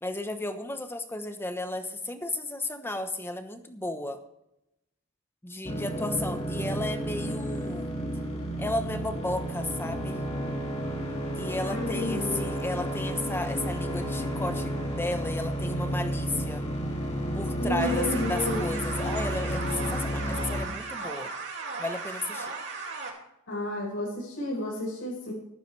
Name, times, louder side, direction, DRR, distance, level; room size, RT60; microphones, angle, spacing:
voice 1, 0.0-4.2 5.4-7.9 8.6-10.2 11.4-16.6 17.3-21.3 21.8-22.5, left 2 dB, 10° left, 8 dB, 1.0 m, -34 dB
sound 1, 5.6-20.7, equal, 30° left, 2.6 m, -31 dB
voice 2, 6.0-6.4 11.6-12.4 17.6-18.6 23.5-25.3, left 1 dB, 70° left, -6 dB, 4.9 m, -31 dB
sound 2, 17.8-23.1, right 4 dB, 55° right, 2.4 m, -36 dB
14.0 x 12.5 x 3.3 m, 0.83 s
head